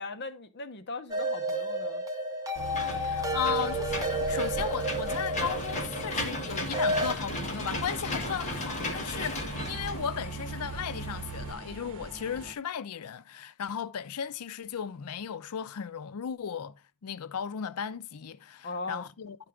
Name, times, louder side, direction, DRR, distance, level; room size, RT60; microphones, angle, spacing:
voice 1, 0.0-2.0 18.6-19.0, left 3 dB, 50° left, 0.8 m, -38 dB
sound 1, 1.1-7.1, right 1 dB, 15° right, 0.9 m, -31 dB
Engine / Mechanisms, 2.6-11.5, equal, 30° left, 1.6 m, -35 dB
voice 2, 2.9-16.8 17.0-19.4, left 8 dB, 80° left, 0.5 m, -36 dB
sound 2, 7.4-12.5, right 2 dB, 65° right, 1.0 m, -44 dB
12.0 x 4.5 x 3.6 m
head